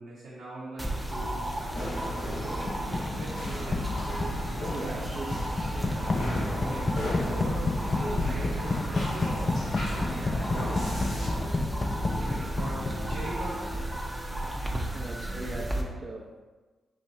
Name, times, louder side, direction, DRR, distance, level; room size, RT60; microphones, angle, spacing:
voice 1, 0.0-3.9 4.8-5.2 5.7-9.5 9.9-11.5 12.2-13.9, right 1 dB, 90° right, -8 dB, 0.8 m, -41 dB
sound 1, 0.8-15.8, right 1 dB, 10° right, 0.6 m, -34 dB
sound 2, 1.7-11.3, left 1 dB, 80° left, 1.4 m, -36 dB
sound 3, 2.7-13.5, left 2 dB, 35° left, 0.4 m, -31 dB
voice 2, 4.6-5.5 12.1-12.7 14.9-16.4, right 2 dB, 45° right, -1 dB, 0.7 m, -40 dB
5.7 x 3.1 x 2.7 m, 1.2 s
cardioid pair, 85°, 0 cm